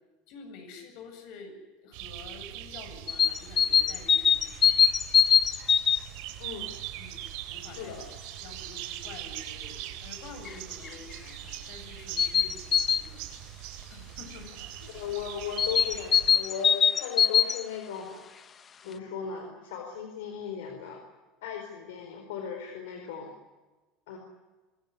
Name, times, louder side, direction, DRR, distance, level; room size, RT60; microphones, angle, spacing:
voice 1, 0.3-4.7 7.0-7.9 8.4-13.4 13.9-14.6 18.8-19.3, left 4 dB, 65° left, 6 dB, 7.9 m, -48 dB
sound 1, 1.9-16.4, right 13 dB, 75° right, 3.4 m, -42 dB
sound 2, 3.1-6.0 10.5-10.6 10.8-10.9 12.2-13.0 15.6-17.6, left 7 dB, 30° left, 0.9 m, -22 dB
voice 2, 6.4-6.7 7.8-8.0 14.8-18.5 18.9-21.0 21.4-23.3 24.1-24.2, left 7 dB, 85° left, 4 dB, 4.4 m, -37 dB
24.5 x 17.0 x 9.8 m, 1.2 s
supercardioid pair, 115°, 0 cm